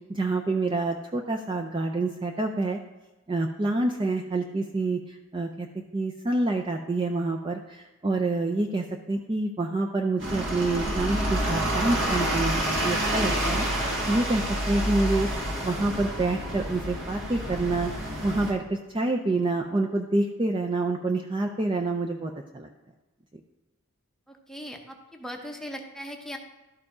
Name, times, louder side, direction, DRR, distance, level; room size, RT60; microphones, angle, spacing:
voice 1, 0.1-2.8 3.3-5.7 5.9-22.7, right 2 dB, 20° right, 3 dB, 0.4 m, -27 dB
sound 1, 10.2-18.5, right 1 dB, 55° right, 1.8 m, -28 dB
voice 2, 24.3-26.4, equal, ahead, 2 dB, 0.8 m, -39 dB
12.0 x 4.7 x 4.8 m, 1.1 s
head